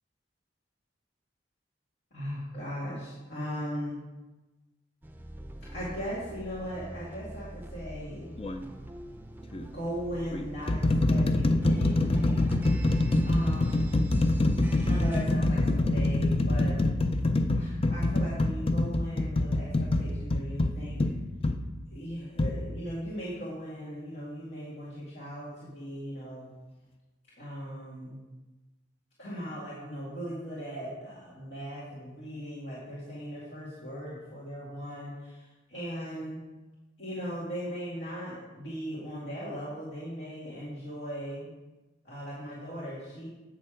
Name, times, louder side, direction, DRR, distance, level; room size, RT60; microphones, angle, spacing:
voice 1, 2.1-4.0 5.7-8.3 9.7-12.5 13.2-13.9 14.9-16.8 17.6-21.0 21.9-26.5 27.4-28.2 29.2-35.4 35.7-36.4 37.0-41.5 42.0-43.3, equal, 65° left, -8 dB, 2.2 m, -38 dB
sound 1, 5.0-15.3, right 1 dB, 10° right, 0.6 m, -44 dB
sound 2, 8.4-8.6 9.5-9.7 10.3-21.6 22.4-22.6, left 2 dB, 30° left, 0.5 m, -25 dB
8.4 x 6.9 x 5.0 m, 1.1 s
head